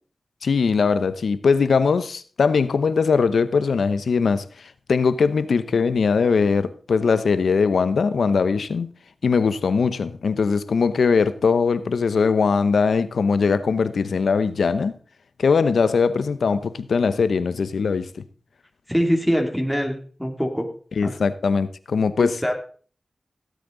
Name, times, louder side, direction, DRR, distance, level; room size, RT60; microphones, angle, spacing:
voice 1, 0.4-8.9 9.2-14.9 15.4-18.2 21.0-22.4, left 5 dB, 90° left, 0.8 m, -21 dB
voice 2, 18.9-20.7 21.0-21.1 22.2-22.6, equal, ahead, 2.7 m, -23 dB
17.0 x 8.4 x 3.9 m
cardioid pair, 50°, 0 cm